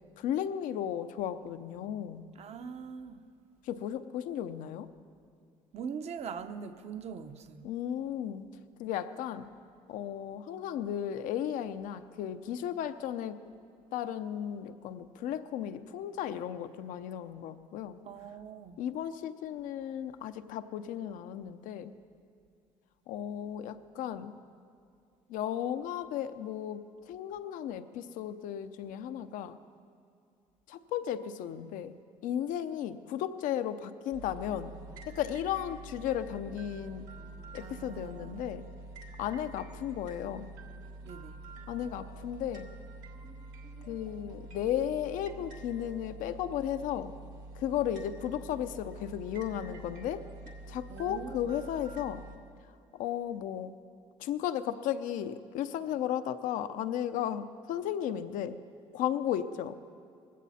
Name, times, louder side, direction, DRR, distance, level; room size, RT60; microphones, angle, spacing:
voice 1, 0.2-2.2 3.6-4.9 7.6-8.5 8.8-9.5 9.9-13.4 13.9-18.0 18.8-21.9 23.1-24.4 25.3-29.6 30.7-32.0 32.2-34.7 35.1-37.1 37.5-38.7 39.2-40.5 41.7-42.7 43.8-47.1 47.5-50.3 50.7-52.3 52.9-53.7 54.2-58.6 58.9-59.7, left 10 dB, 75° left, 0.7 m, -35 dB
voice 2, 2.4-3.2 5.7-7.7 18.0-18.8 37.6-38.7 41.0-41.4 50.9-51.6, right 6 dB, 50° right, 0.9 m, -42 dB
sound 1, 34.1-52.4, right 2 dB, 80° right, 1.7 m, -47 dB
20.0 x 16.0 x 4.3 m
supercardioid pair, 90°, 14 cm